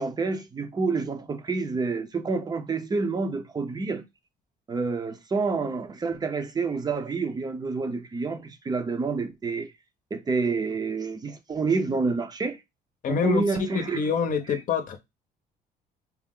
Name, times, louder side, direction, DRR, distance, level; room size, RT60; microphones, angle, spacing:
voice 1, 0.0-4.0 4.7-9.7 10.1-12.6 13.1-14.0, right 4 dB, 25° right, 0.6 m, -28 dB
voice 2, 13.0-15.0, left 6 dB, 50° left, 0.8 m, -27 dB
4.4 x 2.0 x 3.7 m
cardioid pair, 110°, 17 cm